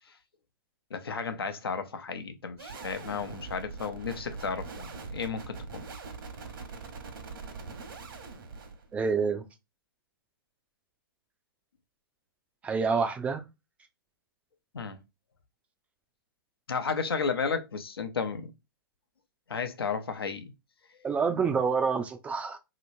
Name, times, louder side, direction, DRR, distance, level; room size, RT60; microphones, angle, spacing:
voice 1, 0.9-5.8 14.7-15.0 16.7-18.5 19.5-20.5, left 5 dB, 90° left, 0.7 m, -33 dB
sound 1, 2.6-9.2, right 4 dB, 65° right, 1.0 m, -43 dB
voice 2, 8.9-9.4 12.6-13.4 21.0-22.6, right 5 dB, 10° right, 0.3 m, -27 dB
3.0 x 3.0 x 2.5 m
hypercardioid pair, 135°, 12 cm